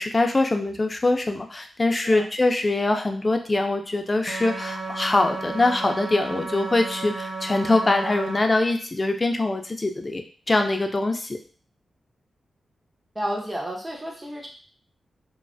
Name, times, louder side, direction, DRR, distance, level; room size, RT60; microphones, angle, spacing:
voice 1, 0.0-10.2 10.5-11.4, left 2 dB, 30° left, 5 dB, 0.4 m, -23 dB
sound 1, 4.3-8.4, right 3 dB, 55° right, 0.4 m, -33 dB
voice 2, 13.1-14.5, equal, 20° right, -2 dB, 0.7 m, -31 dB
3.1 x 2.0 x 2.5 m, 0.41 s
cardioid pair, 80°, 0 cm